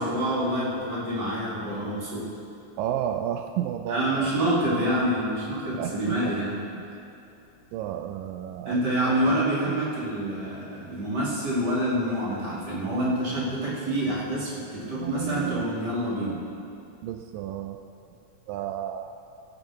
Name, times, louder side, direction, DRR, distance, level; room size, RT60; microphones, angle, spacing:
voice 1, 0.0-2.3 3.9-6.6 8.7-16.4, right 1 dB, 30° right, -8 dB, 3.8 m, -27 dB
voice 2, 2.8-4.7 5.7-6.4 6.8-6.9 7.7-9.8 14.9-15.7 17.0-17.8 18.1-18.2 18.5-19.1, right 10 dB, 85° right, 6 dB, 2.2 m, -33 dB
18.5 x 9.7 x 4.5 m, 2.7 s
omnidirectional pair, 4.0 m